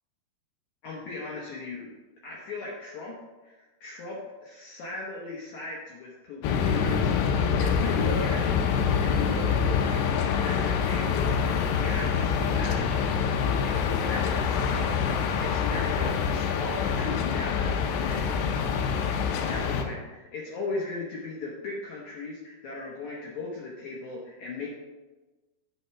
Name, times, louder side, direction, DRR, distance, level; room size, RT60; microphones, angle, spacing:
voice 1, 0.8-1.9 2.2-12.8 13.6-18.3 19.4-24.7, left 3 dB, 70° left, -3 dB, 1.8 m, -37 dB
sound 1, 6.4-19.8, left 6 dB, 85° left, 2.7 m, -26 dB
8.0 x 4.4 x 6.8 m, 1.2 s
omnidirectional pair, 4.7 m